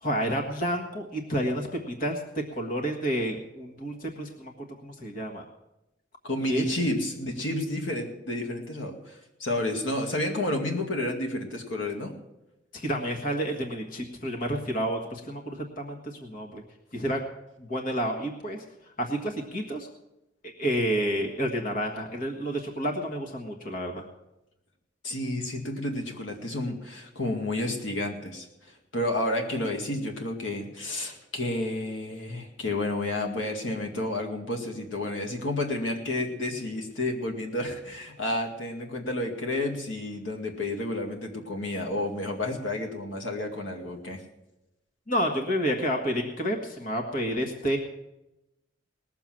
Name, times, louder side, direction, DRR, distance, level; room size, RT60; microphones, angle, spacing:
voice 1, 0.0-2.2 2.5-4.5 4.8-5.4 6.5-6.6 12.7-16.6 16.9-17.2 17.6-18.6 19.0-19.9 20.4-24.1 45.1-47.8, equal, 45° left, 2 dB, 1.6 m, -30 dB
voice 2, 6.2-12.1 25.0-28.5 28.9-44.2, left 1 dB, 85° left, 2 dB, 2.1 m, -31 dB
19.5 x 7.0 x 7.5 m, 0.93 s
head